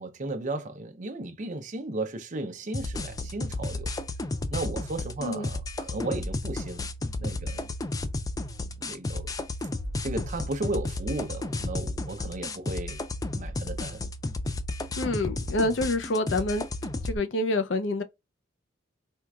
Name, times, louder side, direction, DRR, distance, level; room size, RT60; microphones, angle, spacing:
voice 1, 0.0-3.9 4.5-6.9 7.2-7.7 8.8-9.3 10.0-13.0 13.4-14.0, right 2 dB, 40° right, 0.6 m, -35 dB
sound 1, 2.7-17.2, left 2 dB, 20° left, 0.3 m, -33 dB
voice 2, 15.0-16.6 17.0-18.0, left 2 dB, 70° left, 0.6 m, -27 dB
4.5 x 2.4 x 2.3 m
head